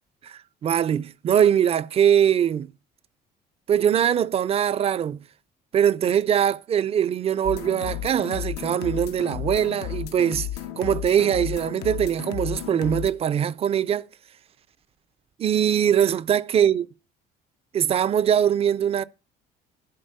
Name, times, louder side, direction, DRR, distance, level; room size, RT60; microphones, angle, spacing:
voice 1, 0.2-2.7 3.7-5.2 5.7-10.5 10.8-14.0 15.4-16.9 17.7-19.0, right 9 dB, 35° right, 0.3 m, -22 dB
sound 1, 7.4-13.1, left 12 dB, 90° left, 0.5 m, -33 dB
11.5 x 3.9 x 5.4 m
cardioid pair, 110°, 17 cm